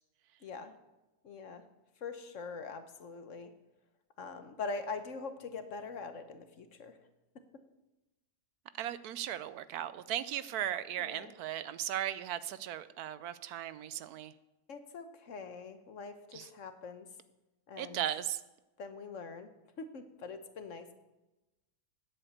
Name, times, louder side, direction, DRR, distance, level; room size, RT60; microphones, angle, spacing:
voice 1, 0.4-0.7 1.2-1.6 2.0-3.5 4.2-7.0 11.0-11.3 14.7-17.1 17.7-18.0 18.8-19.5 19.8-20.9, left 4 dB, 60° left, 9 dB, 1.2 m, -43 dB
voice 2, 8.8-14.3 16.3-16.5 17.8-18.4, right 11 dB, 80° right, 15 dB, 1.1 m, -37 dB
10.5 x 8.0 x 8.0 m, 1.0 s
omnidirectional pair, 1.6 m